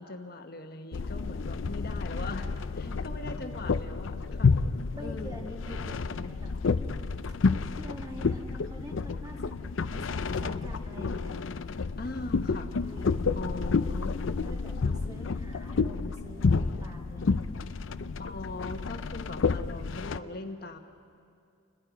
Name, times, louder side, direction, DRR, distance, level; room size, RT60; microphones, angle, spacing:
voice 1, 0.0-2.5 2.7-4.5 5.0-5.5 7.4-7.6 11.1-11.2 12.0-12.7 13.3-14.2 14.8-15.0 18.2-20.8, left 2 dB, 50° left, 6 dB, 1.2 m, -40 dB
sound 1, 0.9-20.2, left 4 dB, 80° left, 0.5 m, -30 dB
voice 2, 2.9-3.8 4.9-6.9 7.4-11.3 12.8-13.2 14.4-17.5, equal, 20° right, 1 dB, 1.8 m, -46 dB
28.0 x 21.0 x 5.1 m, 2.5 s
head